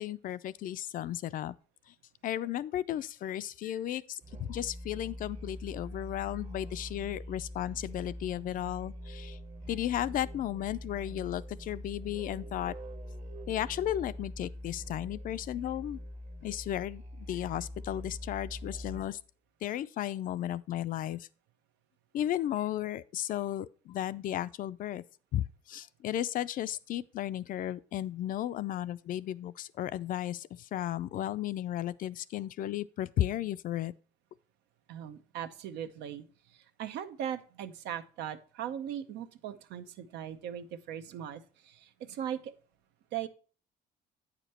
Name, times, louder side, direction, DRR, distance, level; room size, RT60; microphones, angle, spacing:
voice 1, 0.0-1.5 2.2-9.4 9.7-12.7 13.5-16.0 16.4-19.2 19.6-21.2 22.1-25.0 25.3-33.9, left 12 dB, 55° left, 0.4 m, -34 dB
Musical instrument, 4.2-19.2, equal, 45° right, 1.2 m, -43 dB
voice 2, 34.9-42.5 43.1-43.3, right 10 dB, 85° right, 0.7 m, -39 dB
8.6 x 5.1 x 4.2 m
cardioid pair, 110°, 17 cm